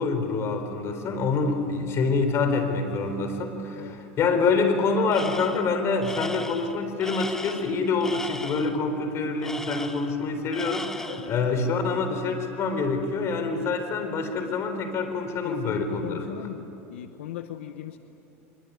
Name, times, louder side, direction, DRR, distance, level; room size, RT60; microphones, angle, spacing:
voice 1, 0.0-16.2, left 4 dB, 45° left, 8 dB, 4.1 m, -26 dB
Tools, 5.1-5.7 6.0-8.8 9.4-10.2 10.5-11.4, left 1 dB, 5° left, 1.2 m, -37 dB
voice 2, 15.4-18.0, left 12 dB, 85° left, 9 dB, 1.0 m, -38 dB
24.5 x 22.5 x 9.6 m, 2.9 s
supercardioid pair, 105°, 7 cm